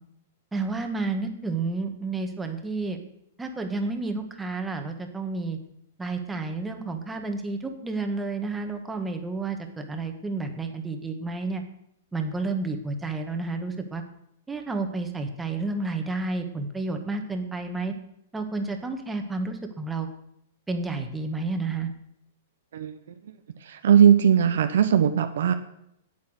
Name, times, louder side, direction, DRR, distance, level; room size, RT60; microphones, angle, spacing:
voice 1, 0.5-3.0 3.4-5.6 6.0-11.6 12.1-14.0 14.5-17.9 18.3-20.1 20.7-21.9, right 3 dB, 10° right, 5 dB, 1.7 m, -30 dB
voice 2, 23.7-25.5, right 8 dB, 75° right, 7 dB, 1.0 m, -19 dB
8.5 x 8.4 x 8.0 m, 0.76 s
hypercardioid pair, 130°, 0 cm